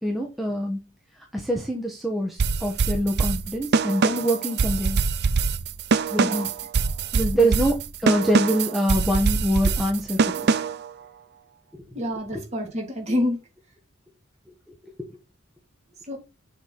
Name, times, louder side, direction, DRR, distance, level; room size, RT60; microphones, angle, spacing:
voice 1, 0.0-0.8 1.3-5.0 6.1-6.5 7.1-7.7 8.0-10.6 11.7-11.8, equal, ahead, 1.1 m, -25 dB
sound 1, 2.4-10.9, right 5 dB, 50° right, 0.5 m, -24 dB
voice 2, 6.2-6.5 7.3-7.5 11.9-13.4 16.1-16.2, left 1 dB, 30° right, 2.9 m, -27 dB
7.0 x 4.0 x 5.8 m
head